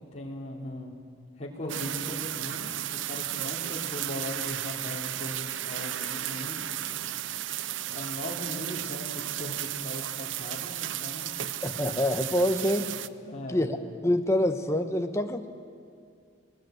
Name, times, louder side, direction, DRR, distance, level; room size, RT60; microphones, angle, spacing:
voice 1, 0.1-0.9 1.4-6.7 7.9-11.3 13.2-13.7, left 1 dB, 35° left, -2 dB, 3.1 m, -39 dB
sound 1, 1.7-13.1, right 12 dB, 70° right, 0.6 m, -34 dB
voice 2, 11.6-12.9 13.5-13.7 14.0-15.5, left 1 dB, 15° left, 6 dB, 1.1 m, -26 dB
20.0 x 19.5 x 9.2 m, 2.2 s
head